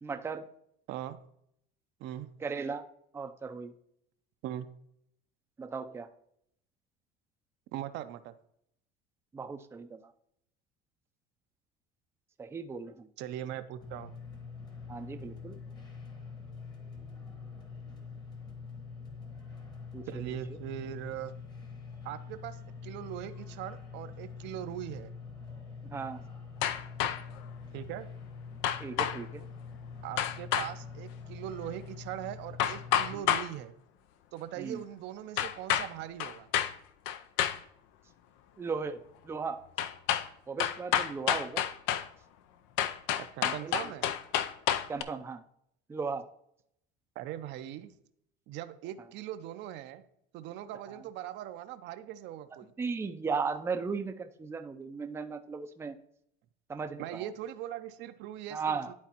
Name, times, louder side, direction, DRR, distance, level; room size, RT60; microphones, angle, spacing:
voice 1, 0.0-0.5 2.4-2.9 3.1-3.7 5.6-6.1 9.3-10.0 12.4-13.1 14.9-15.6 19.9-20.0 25.8-26.2 28.8-29.4 33.1-33.2 34.6-34.8 38.6-39.6 40.5-41.6 43.4-43.9 44.9-45.4 45.9-46.2 52.8-56.0 56.7-57.3 58.5-58.9, right 5 dB, 10° right, 7 dB, 0.4 m, -36 dB
voice 2, 0.9-1.2 2.0-2.3 4.4-4.7 7.7-8.3 13.2-14.1 20.1-21.4 22.0-25.1 27.7-28.1 30.0-33.7 34.3-36.5 43.2-44.1 47.2-47.9 48.5-50.0 50.3-52.7 57.0-58.9, right 11 dB, 65° right, 10 dB, 0.6 m, -40 dB
sound 1, 13.8-33.2, left 5 dB, 20° left, 1.1 m, -45 dB
sound 2, 26.6-27.4 28.6-29.2 30.2-30.7 32.6-33.5 35.4-35.9 36.2-36.7 37.1-37.6 39.8-40.3 40.6-42.1 42.8-45.0, left 10 dB, 75° left, 0.5 m, -29 dB
11.5 x 4.0 x 2.9 m, 0.73 s
cardioid pair, 120°, 20 cm